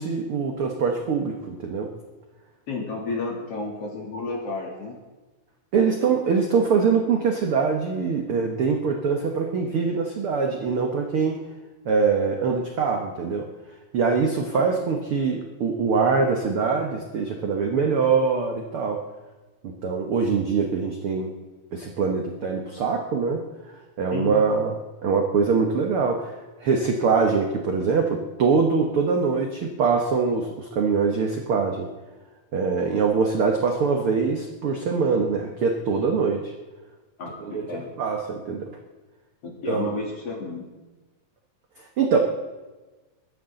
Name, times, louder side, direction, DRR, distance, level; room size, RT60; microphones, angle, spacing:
voice 1, 0.0-1.9 5.7-11.4 11.8-13.4 13.9-19.0 19.6-21.3 21.7-23.4 24.0-24.7 25.0-31.9 32.5-36.5 37.4-38.7 39.7-39.9 42.0-42.2, right 5 dB, 60° right, 3 dB, 1.5 m, -23 dB
voice 2, 2.7-5.0 14.5-14.9 24.1-24.3 37.2-37.9 39.4-40.7, left 3 dB, 45° left, -1 dB, 3.6 m, -32 dB
22.5 x 9.9 x 3.9 m, 1.2 s
omnidirectional pair, 4.0 m